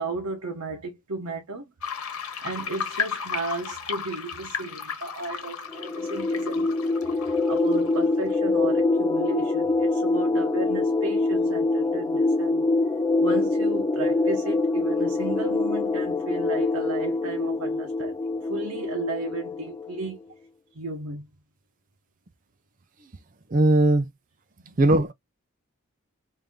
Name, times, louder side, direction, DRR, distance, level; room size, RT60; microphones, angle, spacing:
voice 1, 0.0-1.7 2.4-6.7 7.3-12.7 13.2-20.2 20.7-21.3 24.6-24.8, right 3 dB, 90° right, 1.0 m, -34 dB
sound 1, 1.8-8.2, left 6 dB, 85° left, 1.1 m, -34 dB
sound 2, 5.7-20.0, left 3 dB, 15° left, 0.4 m, -25 dB
voice 2, 23.5-24.1 24.8-25.1, right 1 dB, 40° right, 0.5 m, -19 dB
3.4 x 2.7 x 3.5 m
head